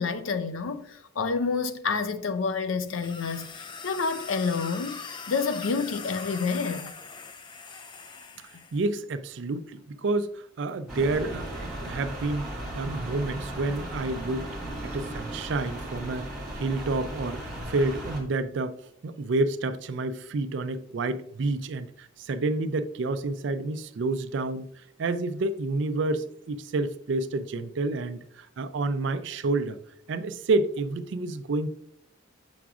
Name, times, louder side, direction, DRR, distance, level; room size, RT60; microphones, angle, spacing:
voice 1, 0.0-5.0 5.3-6.9, left 4 dB, 85° left, 0.5 m, -29 dB
sound 1, 2.9-8.8, left 5 dB, 25° left, 0.3 m, -41 dB
voice 2, 8.7-12.5 12.8-14.5 14.8-24.7 25.0-29.8 30.1-31.7, right 2 dB, 65° right, 0.4 m, -29 dB
sound 2, 10.9-18.2, right 1 dB, ahead, 1.7 m, -36 dB
7.0 x 5.9 x 2.4 m
head